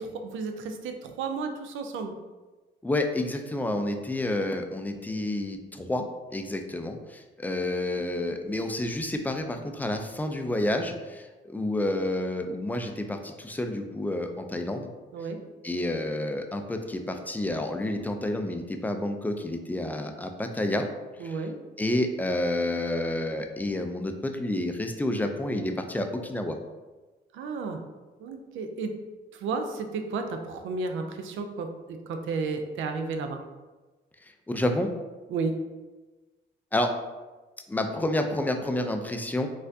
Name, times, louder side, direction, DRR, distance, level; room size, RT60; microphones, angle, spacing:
voice 1, 0.0-2.1 15.1-15.4 21.2-21.6 27.3-27.8 28.2-29.0 29.3-33.4 35.3-35.6, right 4 dB, 75° right, 6 dB, 0.5 m, -32 dB
voice 2, 2.8-6.0 6.3-14.9 15.6-20.9 21.2-21.5 21.8-26.6 34.5-34.9 36.7-36.9 37.7-39.5, left 1 dB, 10° left, 5 dB, 0.4 m, -29 dB
4.2 x 2.5 x 2.7 m, 1.2 s
cardioid pair, 90°, 20 cm